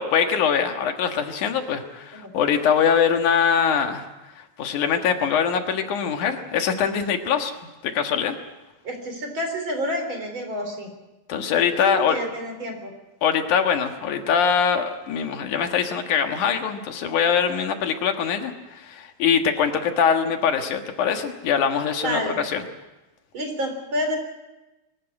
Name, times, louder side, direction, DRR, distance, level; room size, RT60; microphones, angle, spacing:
voice 1, 0.0-4.1 4.4-7.5 7.8-8.4 11.3-12.2 13.2-22.6, left 7 dB, 80° left, 6 dB, 3.0 m, -23 dB
voice 2, 8.8-10.9 11.8-12.9 22.0-22.4 23.3-24.2, equal, 40° right, 4 dB, 4.3 m, -29 dB
23.5 x 14.0 x 9.8 m, 1.1 s
omnidirectional pair, 3.5 m